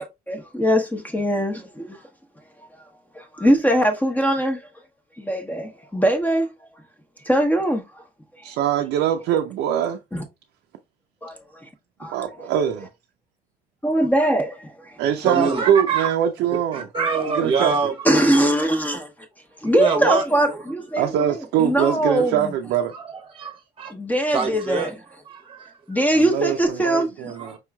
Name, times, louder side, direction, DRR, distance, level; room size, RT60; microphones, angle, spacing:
voice 1, 0.0-2.0 2.8-2.9 3.1-4.7 5.2-6.7 7.2-8.0 8.4-8.5 10.1-10.2 11.2-11.7 12.0-12.5 13.8-15.0 18.0-19.1 19.6-21.1 21.6-22.5 23.9-24.9 25.9-27.4, right 1 dB, 10° left, 0.8 m, -22 dB
voice 2, 8.4-10.0 12.1-12.9 15.0-16.9 17.3-17.7 21.0-22.9 26.1-27.6, right 9 dB, 80° right, 0.5 m, -23 dB
voice 3, 15.2-16.1 16.7-18.3 19.6-20.2 22.9-23.9 24.2-24.9 25.3-26.0 27.4-27.6, right 5 dB, 30° right, 0.9 m, -25 dB
4.7 x 3.0 x 2.2 m
cardioid pair, 110°, 17 cm